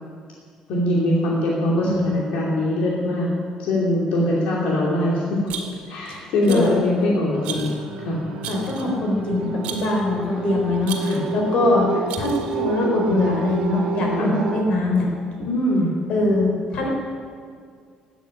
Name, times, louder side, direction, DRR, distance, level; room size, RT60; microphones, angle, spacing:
voice 1, 0.7-3.3 3.6-5.4 5.9-7.7 8.0-8.2 11.0-11.2 14.2-14.4 15.5-15.9, left 1 dB, 80° left, -4 dB, 2.7 m, -22 dB
voice 2, 1.8-2.1 6.1-6.7 8.5-15.1 16.1-16.9, left 2 dB, 55° left, 0 dB, 4.0 m, -22 dB
Rattle, 5.5-6.0 6.5-6.8 7.4-7.8 8.4-9.0 9.6-10.0 10.8-11.3 12.1-12.6, right 7 dB, 85° right, 2.1 m, -35 dB
sound 1, 7.3-14.6, right 5 dB, 50° right, 2.0 m, -30 dB
13.0 x 9.1 x 9.9 m, 2.2 s
cardioid pair, 155°, 2 cm